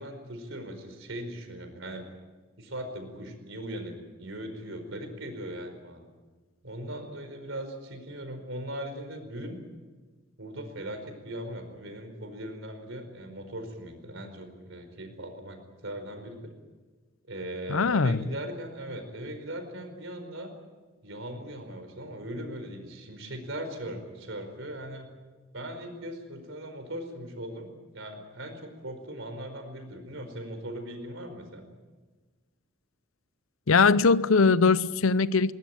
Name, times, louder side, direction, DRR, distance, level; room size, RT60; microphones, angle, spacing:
voice 1, 0.0-2.0 2.6-6.0 6.6-9.6 10.4-16.5 17.3-20.5 21.0-25.1 25.5-31.7, right 1 dB, 70° right, 4.8 m, -39 dB
voice 2, 17.7-18.2 33.7-35.5, left 4 dB, 90° left, 0.7 m, -21 dB
20.5 x 19.5 x 9.0 m
head